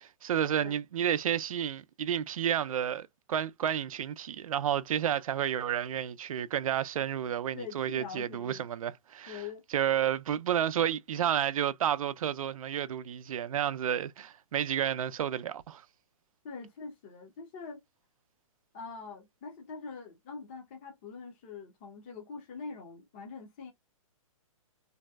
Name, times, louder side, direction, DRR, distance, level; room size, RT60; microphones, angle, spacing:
voice 1, 0.0-9.4 9.7-15.8, right 9 dB, 75° right, 0.4 m, -31 dB
voice 2, 7.5-8.6 9.3-9.6 16.4-17.8 18.7-23.7, left 5 dB, 20° left, 0.5 m, -44 dB
3.1 x 2.6 x 2.2 m
hypercardioid pair, 175°, 18 cm